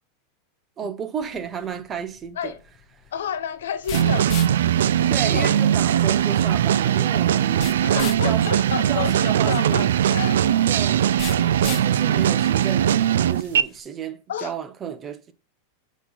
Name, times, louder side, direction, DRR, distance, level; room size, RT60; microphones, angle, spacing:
voice 1, 0.8-2.5 3.0-3.1 5.1-9.9 10.7-11.2 11.6-15.3, right 7 dB, 30° right, 0.8 m, -33 dB
sound 1, 1.2-13.8, left 11 dB, 45° left, 0.7 m, -41 dB
voice 2, 3.1-4.3 5.2-5.6 7.8-10.4 11.4-11.5 14.3-14.5, left 8 dB, 80° left, 0.7 m, -30 dB
sound 2, 3.9-13.6, right 10 dB, 80° right, 0.3 m, -20 dB
8.1 x 3.1 x 3.9 m
hypercardioid pair, 110°, 0 cm